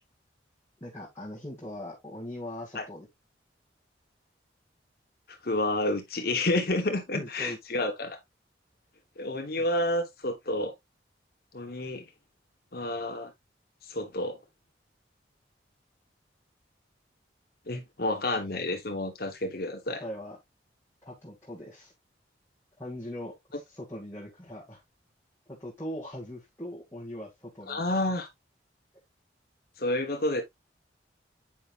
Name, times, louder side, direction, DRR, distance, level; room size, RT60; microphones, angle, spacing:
voice 1, 0.8-3.1 7.1-7.8 9.6-9.7 20.0-20.4 21.0-21.9 22.8-24.8 25.5-27.8, left 1 dB, 15° left, 1.9 m, -40 dB
voice 2, 5.4-8.2 9.2-10.7 11.5-12.0 12.7-13.3 13.8-14.4 17.7-20.0 27.7-28.3 29.8-30.4, left 1 dB, 55° left, 1.1 m, -29 dB
8.9 x 5.5 x 2.5 m
head